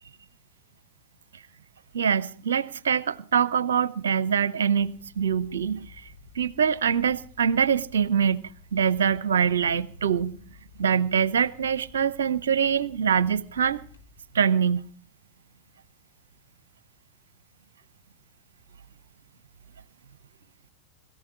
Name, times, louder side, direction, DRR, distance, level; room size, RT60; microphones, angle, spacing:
voice 1, 1.9-5.9 6.4-10.4 10.8-13.8 14.3-14.9, right 7 dB, 65° right, 0.7 m, -24 dB
sound 1, 4.8-14.2, left 5 dB, 75° left, 3.4 m, -53 dB
21.5 x 14.0 x 4.7 m
figure-of-eight pair, 90°, 0 cm